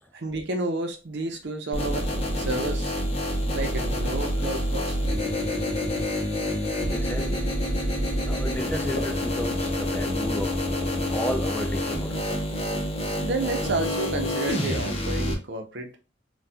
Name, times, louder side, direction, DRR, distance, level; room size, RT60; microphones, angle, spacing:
voice 1, 0.1-2.1 2.4-2.9 3.5-4.9 13.2-16.0, right 2 dB, 65° right, 0.7 m, -30 dB
sound 1, 1.1-14.9, equal, 60° left, 1.1 m, -44 dB
sound 2, 1.7-15.3, left 1 dB, 35° left, 0.8 m, -27 dB
voice 2, 6.9-7.5 8.2-10.6 11.1-12.4, equal, 10° left, 0.4 m, -33 dB
4.2 x 2.4 x 2.3 m
head